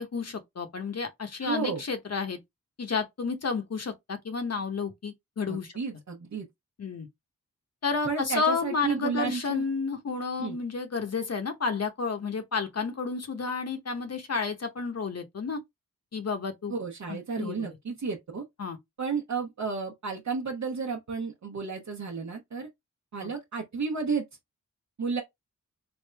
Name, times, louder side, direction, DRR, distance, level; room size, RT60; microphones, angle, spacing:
voice 1, 0.0-2.4 2.8-5.7 6.8-7.1 7.8-15.6 16.1-16.7 17.1-17.7 18.6-18.8 23.2-23.3, left 4 dB, 50° left, 0.8 m, -31 dB
voice 2, 1.4-1.8 5.5-6.5 8.0-9.6 10.4-10.6 16.7-18.4 19.0-22.7 23.1-24.2 25.0-25.2, right 5 dB, 60° right, 0.9 m, -32 dB
3.4 x 2.5 x 3.3 m
cardioid pair, 65°, 33 cm